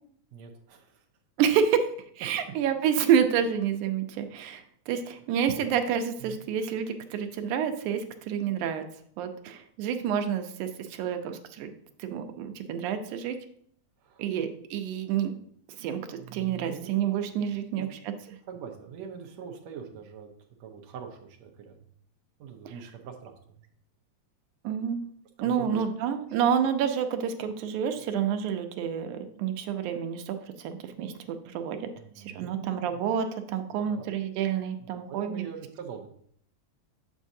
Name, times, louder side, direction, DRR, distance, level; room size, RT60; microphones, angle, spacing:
voice 1, 0.3-1.1 6.2-6.4 14.0-14.5 15.8-16.9 17.7-17.9 18.5-20.3 20.6-21.8 22.4-23.3 25.4-25.9 32.0-33.0 33.7-34.2 34.8-36.1, right 7 dB, 70° right, 3 dB, 1.9 m, -43 dB
voice 2, 1.4-1.9 2.2-8.8 9.2-11.7 12.0-13.4 14.2-15.4 15.8-18.1 24.6-25.0 25.4-31.8 32.2-35.4, right 8 dB, 85° right, 7 dB, 2.2 m, -28 dB
7.3 x 7.0 x 2.7 m, 0.64 s
omnidirectional pair, 3.4 m